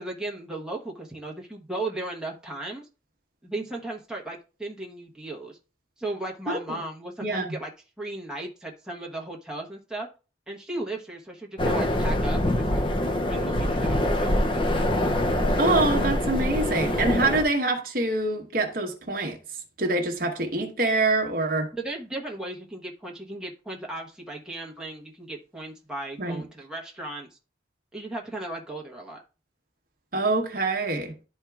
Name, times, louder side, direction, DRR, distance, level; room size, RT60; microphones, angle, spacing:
voice 1, 0.0-2.9 3.4-5.6 6.0-7.7 8.0-10.1 10.5-12.8 13.3-14.8 21.8-27.3 27.9-29.2, right 2 dB, 5° right, 1.0 m, -36 dB
voice 2, 6.5-6.8 7.2-7.5 15.6-19.4 19.8-21.7 26.2-26.4 30.1-31.1, right 2 dB, 50° right, 1.0 m, -25 dB
sound 1, 11.6-17.4, left 1 dB, 25° left, 0.5 m, -24 dB
11.5 x 4.4 x 2.3 m
head